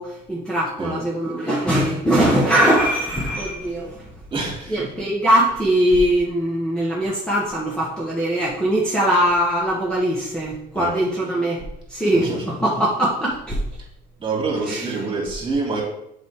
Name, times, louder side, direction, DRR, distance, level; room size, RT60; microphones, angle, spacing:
voice 1, 0.0-4.0 4.7-11.6 11.9-13.6 14.7-14.9, right 1 dB, 5° left, -5 dB, 1.5 m, -21 dB
voice 2, 4.3-4.8 10.7-10.9 12.0-12.4 14.2-15.8, right 3 dB, 30° right, -2 dB, 3.0 m, -26 dB
7.2 x 5.2 x 3.8 m, 0.77 s
cardioid pair, 110°, 17 cm